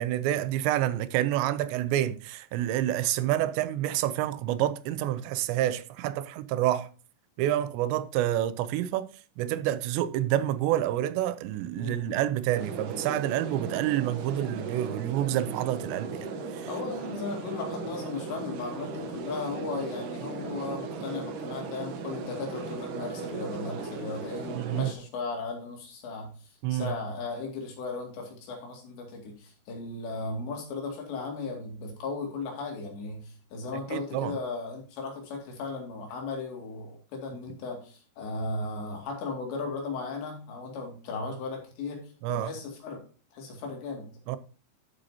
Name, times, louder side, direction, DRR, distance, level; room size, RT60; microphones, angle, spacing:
voice 1, 0.0-6.9 7.4-9.1 9.4-16.3 24.6-24.9 26.6-27.0 33.9-34.4 42.2-42.5 44.3-44.4, right 13 dB, 90° right, 2.9 m, -28 dB
voice 2, 11.8-12.2 16.7-26.3 26.7-43.0 43.3-44.1, left 3 dB, 80° left, 4.7 m, -36 dB
sound 1, 12.5-24.9, right 4 dB, 65° right, 2.2 m, -37 dB
12.5 x 7.9 x 2.8 m
omnidirectional pair, 5.0 m